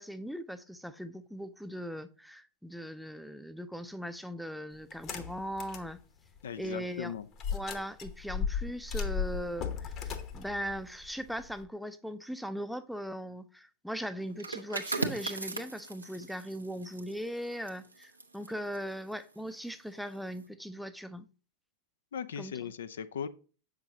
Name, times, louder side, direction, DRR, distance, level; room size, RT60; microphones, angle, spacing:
voice 1, 0.0-6.0 6.6-7.1 7.5-21.2 22.4-22.5, equal, ahead, 0.5 m, -39 dB
sound 1, 4.9-5.9 6.4-6.5 7.4-11.6, left 6 dB, 35° left, 0.9 m, -36 dB
voice 2, 6.4-7.3 22.1-23.3, left 7 dB, 65° left, 0.4 m, -38 dB
sound 2, 14.3-19.8 20.1-20.4, right 3 dB, 80° right, 0.9 m, -39 dB
7.7 x 5.8 x 2.8 m
figure-of-eight pair, 90°, 0 cm